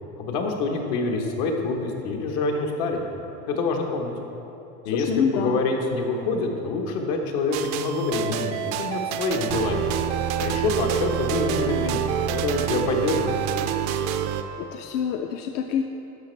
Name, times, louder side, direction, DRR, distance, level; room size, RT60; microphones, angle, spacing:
voice 1, 0.2-3.0 3.5-4.1 4.8-9.9 10.4-13.4, left 3 dB, 80° left, 2 dB, 1.2 m, -26 dB
voice 2, 4.9-5.6 14.6-15.8, left 7 dB, 55° left, 5 dB, 0.4 m, -27 dB
sound 1, 7.5-14.4, right 9 dB, 70° right, 0.5 m, -27 dB
11.5 x 6.7 x 3.3 m, 2.9 s
cardioid pair, 165°, 21 cm